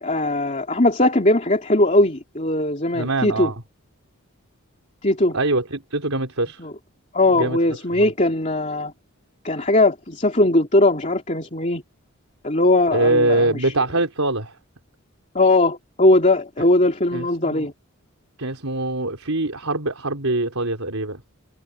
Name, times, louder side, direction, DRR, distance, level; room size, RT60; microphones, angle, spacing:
voice 1, 0.0-3.5 5.0-5.4 6.6-6.7 7.1-8.9 9.4-11.8 12.4-13.7 15.3-17.7, left 2 dB, 35° left, 3.0 m, -19 dB
voice 2, 2.9-3.6 5.3-6.7 7.3-7.6 7.9-8.1 12.9-14.6 17.1-17.7 18.4-21.2, right 2 dB, 75° right, 3.8 m, -23 dB
head